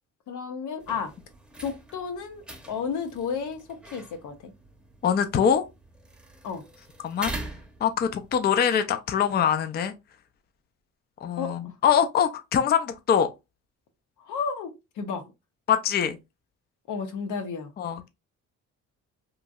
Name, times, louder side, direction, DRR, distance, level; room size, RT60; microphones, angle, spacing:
voice 1, 0.3-1.1 1.6-4.5 6.4-6.6 11.4-11.8 14.2-15.3 16.9-17.7, left 6 dB, 75° left, 0.7 m, -32 dB
sound 1, 0.8-8.3, right 1 dB, 5° right, 0.7 m, -43 dB
voice 2, 5.0-5.6 7.0-7.3 7.8-9.9 11.2-13.3 15.7-16.2 17.8-18.1, left 8 dB, 35° left, 0.4 m, -23 dB
3.0 x 2.6 x 2.3 m
cardioid pair, 90°, 30 cm